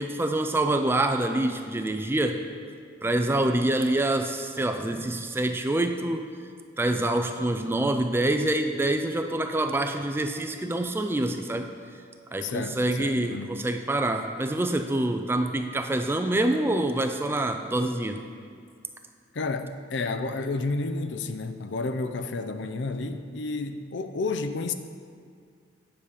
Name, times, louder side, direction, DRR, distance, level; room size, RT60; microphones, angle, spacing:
voice 1, 0.0-2.4 3.0-6.3 6.8-11.7 12.3-18.2, right 1 dB, 10° right, 6 dB, 0.3 m, -26 dB
voice 2, 12.4-13.5 19.3-24.7, left 3 dB, 65° left, 8 dB, 0.5 m, -31 dB
9.6 x 6.9 x 5.0 m, 2.2 s
head